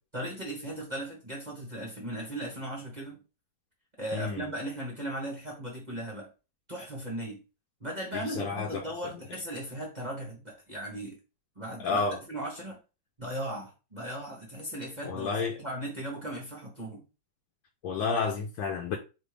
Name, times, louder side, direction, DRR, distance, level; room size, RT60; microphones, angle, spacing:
voice 1, 0.1-3.2 4.0-6.3 6.7-7.4 7.8-11.2 11.6-12.8 13.2-15.3 15.6-17.0, right 1 dB, 25° right, 1.0 m, -37 dB
voice 2, 4.1-4.5 8.1-8.8 11.8-12.2 15.0-15.5 17.8-19.0, left 4 dB, 75° left, 1.5 m, -30 dB
4.3 x 3.5 x 3.3 m
omnidirectional pair, 2.2 m